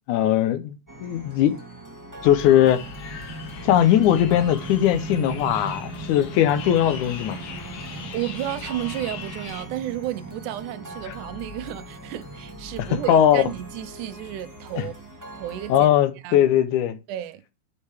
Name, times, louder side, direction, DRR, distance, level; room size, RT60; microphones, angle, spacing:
voice 1, 0.1-1.6 2.2-2.8 3.6-7.4 13.1-13.4 14.8-14.9 15.7-17.0, left 11 dB, 80° left, 2.2 m, -19 dB
sound 1, 0.9-15.8, equal, 15° right, 0.8 m, -42 dB
sound 2, 2.2-14.4, right 3 dB, 60° right, 1.9 m, -40 dB
sound 3, 2.6-9.7, left 7 dB, 65° left, 2.5 m, -40 dB
voice 2, 7.8-14.9 15.3-15.9 16.2-16.4 17.1-17.4, right 13 dB, 85° right, 2.3 m, -32 dB
8.1 x 5.6 x 3.4 m
omnidirectional pair, 3.5 m